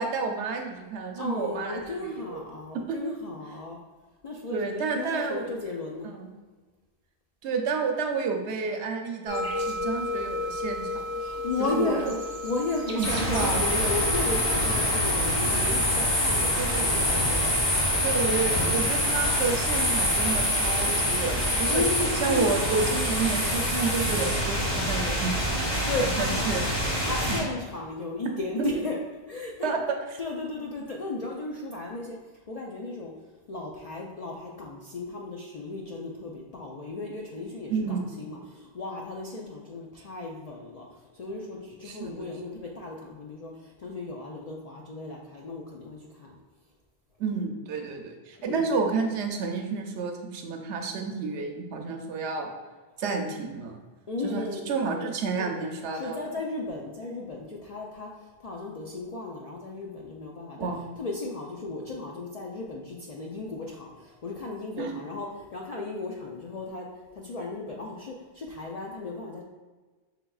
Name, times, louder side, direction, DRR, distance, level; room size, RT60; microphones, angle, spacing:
voice 1, 0.0-2.4 2.9-3.1 4.5-5.5 6.0-6.3 7.4-11.0 11.6-12.1 12.9-13.8 16.6-17.1 18.0-21.8 22.1-27.4 28.6-28.7 29.6-29.8 30.1-30.2 37.7-38.2 41.8-42.1 47.2-52.5 53.0-53.8 54.2-56.2 60.6-60.8 64.8-65.0, right 4 dB, 80° right, 3 dB, 0.9 m, -30 dB
voice 2, 1.2-3.8 4.2-6.1 11.2-12.2 12.4-17.5 21.7-22.6 25.9-26.4 27.0-28.9 29.3-29.7 30.2-32.2 32.5-33.1 33.5-40.9 41.1-46.4 48.4-48.7 54.1-54.6 55.4-55.5 55.9-58.1 58.4-60.7 61.0-66.9 67.1-69.4, left 3 dB, 60° left, -3 dB, 0.4 m, -35 dB
sound 1, 9.3-14.9, left 2 dB, 20° right, 0.7 m, -33 dB
sound 2, 13.0-27.4, equal, 25° left, 1.0 m, -25 dB
5.8 x 3.4 x 2.3 m, 1.3 s
omnidirectional pair, 1.2 m